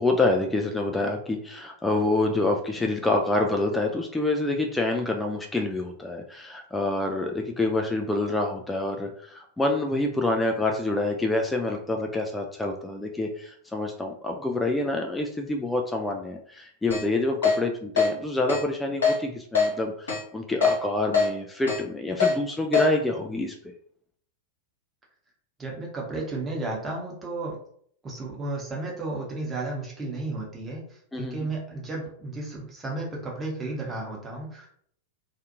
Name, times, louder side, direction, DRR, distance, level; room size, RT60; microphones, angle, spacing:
voice 1, 0.0-23.7 31.1-31.5, left 2 dB, 10° left, 2 dB, 0.3 m, -27 dB
Keyboard (musical), 16.9-17.0 17.4-17.6 18.0-18.1 18.5-18.6 19.0-19.2 19.6-19.7 20.1-20.2 20.6-20.8 21.1-21.3 21.7-21.8 22.2-22.3 22.7-22.9, left 5 dB, 70° left, 1.0 m, -21 dB
voice 2, 25.6-27.6 28.0-34.7, right 2 dB, 20° right, -3 dB, 1.0 m, -33 dB
2.5 x 2.4 x 2.6 m, 0.63 s
figure-of-eight pair, 90°, 0 cm